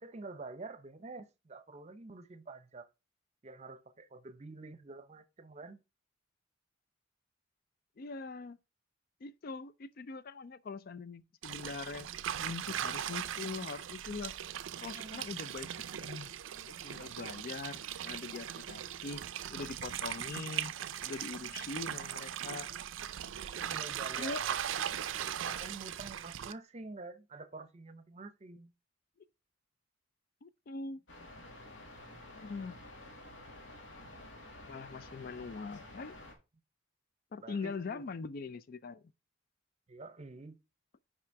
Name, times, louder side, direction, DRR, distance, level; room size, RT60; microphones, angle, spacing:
voice 1, 0.0-2.9 3.4-5.8 14.9-15.5 21.4-21.6 23.6-24.6 24.9-25.0 25.4-28.7 37.4-38.0 39.9-40.6, right 3 dB, 35° right, 0.7 m, -48 dB
voice 2, 8.0-8.6 9.2-12.1 12.4-14.3 14.8-16.3 16.7-19.2 19.5-20.7 21.0-22.7 24.1-24.4 30.4-31.0 32.3-32.8 34.6-36.1 37.3-39.0, left 4 dB, 50° left, 0.4 m, -42 dB
sound 1, 11.4-26.5, right 10 dB, 85° right, 0.4 m, -39 dB
sound 2, 31.1-36.3, left 1 dB, 75° left, 2.1 m, -51 dB
6.0 x 4.9 x 4.6 m
head